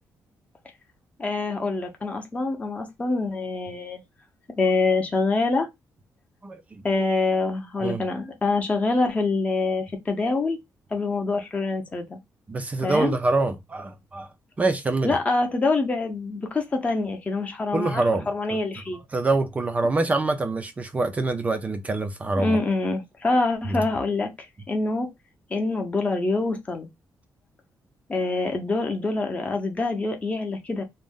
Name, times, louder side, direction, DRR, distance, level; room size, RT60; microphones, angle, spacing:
voice 1, 1.2-4.0 4.5-5.7 6.8-10.6 10.9-12.2 12.8-13.1 15.0-19.0 22.4-24.3 24.7-25.1 25.5-26.9 28.1-30.8, left 3 dB, 20° left, 0.6 m, -25 dB
voice 2, 6.4-7.0 7.8-8.1 12.5-14.3 14.6-15.2 17.7-18.3 19.1-22.6 23.7-23.8, right 2 dB, 20° right, 0.3 m, -25 dB
2.5 x 2.0 x 3.5 m
wide cardioid pair, 170°, 7 cm